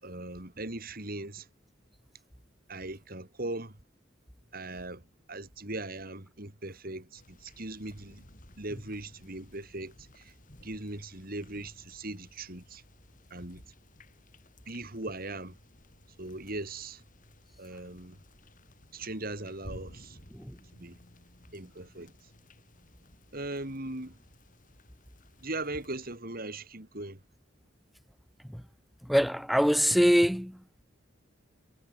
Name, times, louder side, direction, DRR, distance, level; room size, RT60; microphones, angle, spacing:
voice 1, 0.0-1.5 2.7-3.8 4.5-5.0 5.3-8.2 8.6-10.3 10.6-12.8 13.3-13.6 14.7-15.6 16.2-17.0 17.6-18.2 18.9-20.2 20.7-21.0 21.5-22.1 23.3-24.2 25.4-27.2, right 2 dB, 50° right, 4.2 m, -39 dB
sound 1, 7.1-26.2, left 1 dB, 45° left, 7.3 m, -56 dB
voice 2, 29.1-30.6, equal, ahead, 0.7 m, -24 dB
head